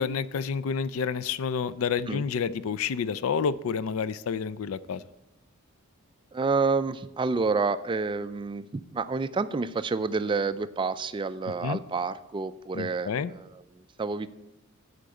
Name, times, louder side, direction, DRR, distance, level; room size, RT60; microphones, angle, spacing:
voice 1, 0.0-5.0 11.6-11.8 12.7-13.3, left 6 dB, 65° left, 17 dB, 0.4 m, -29 dB
voice 2, 6.3-13.5 13.8-14.3, right 4 dB, 20° right, 13 dB, 0.3 m, -29 dB
8.4 x 5.2 x 7.7 m, 0.96 s
head